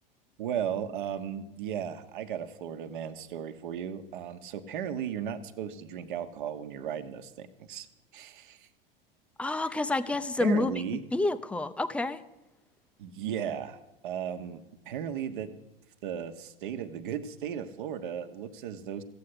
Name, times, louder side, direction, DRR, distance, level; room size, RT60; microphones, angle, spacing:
voice 1, 0.4-7.9 8.1-8.7 10.4-11.0 13.0-13.8 14.0-15.5 16.0-19.0, right 9 dB, 55° right, 9 dB, 1.2 m, -36 dB
voice 2, 9.4-10.7 11.1-12.2, left 2 dB, 5° left, 12 dB, 0.6 m, -28 dB
15.5 x 8.5 x 8.1 m, 1.0 s
figure-of-eight pair, 90°, 29 cm